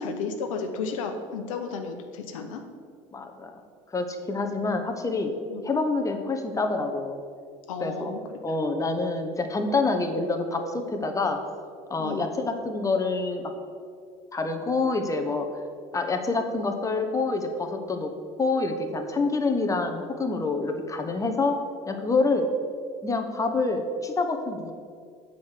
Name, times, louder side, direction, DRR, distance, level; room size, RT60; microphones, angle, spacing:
voice 1, 0.0-2.6 5.5-5.6 7.7-8.4 12.0-12.3, left 4 dB, 85° left, 5 dB, 0.7 m, -33 dB
voice 2, 3.1-3.6 3.9-5.3 5.6-7.2 7.8-8.1 8.4-11.4 11.9-13.5 14.3-15.5 15.9-18.1 18.4-21.6 21.9-22.5 23.0-24.7, left 3 dB, 20° left, 5 dB, 1.0 m, -27 dB
7.0 x 4.7 x 6.7 m, 2.2 s
hypercardioid pair, 75°, 17 cm